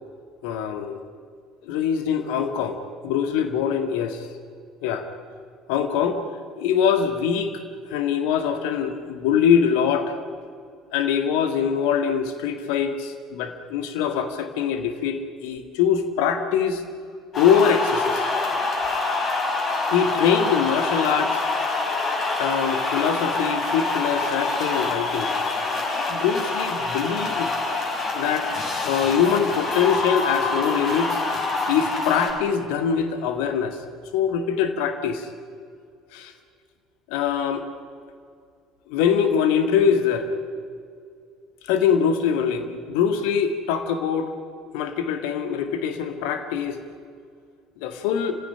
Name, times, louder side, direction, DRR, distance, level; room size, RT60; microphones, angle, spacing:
voice 1, 0.4-1.0 1.6-4.3 4.8-5.1 5.7-6.2 6.6-7.5 7.9-10.1 10.9-16.8 17.4-18.3 19.9-21.4 22.4-25.3 26.1-27.5 28.1-28.5 28.8-31.2 31.7-33.8 34.1-35.3 36.1-36.3 37.1-37.6 38.9-40.3 41.6-44.3 44.7-46.8 47.8-48.3, left 7 dB, 60° left, 7 dB, 1.9 m, -23 dB
sound 1, 17.3-32.3, left 3 dB, 40° left, 5.5 m, -26 dB
28.0 x 16.0 x 10.0 m, 2.3 s
figure-of-eight pair, 60°, 0 cm